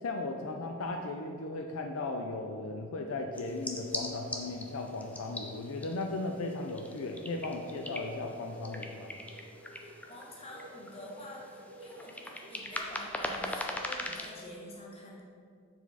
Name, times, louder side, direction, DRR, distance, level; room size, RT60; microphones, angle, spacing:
voice 1, 0.0-9.1, left 2 dB, 70° left, 3 dB, 0.4 m, -36 dB
sound 1, 3.3-14.4, left 1 dB, 5° left, 0.4 m, -41 dB
Bird, 6.9-13.4, right 1 dB, 75° right, 1.1 m, -53 dB
voice 2, 9.7-15.2, left 1 dB, 30° left, -3 dB, 1.1 m, -48 dB
7.1 x 4.1 x 4.1 m, 2.3 s
head